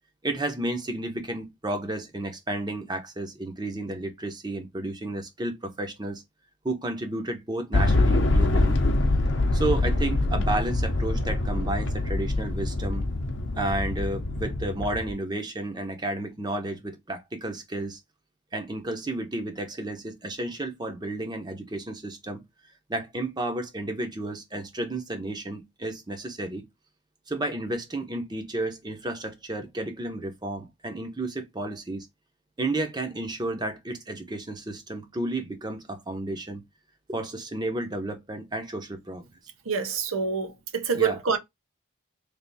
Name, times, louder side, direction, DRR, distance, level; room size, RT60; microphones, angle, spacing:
voice 1, 0.2-6.2 6.6-8.8 9.5-13.1 13.6-18.0 18.5-22.4 22.9-26.6 27.3-32.1 32.6-36.6 37.1-39.2 40.9-41.2, right 2 dB, 20° right, 0.7 m, -32 dB
sound 1, 7.7-15.1, left 2 dB, 60° left, 0.7 m, -24 dB
voice 2, 39.7-41.4, right 6 dB, 90° right, 0.8 m, -26 dB
3.4 x 2.6 x 3.9 m
head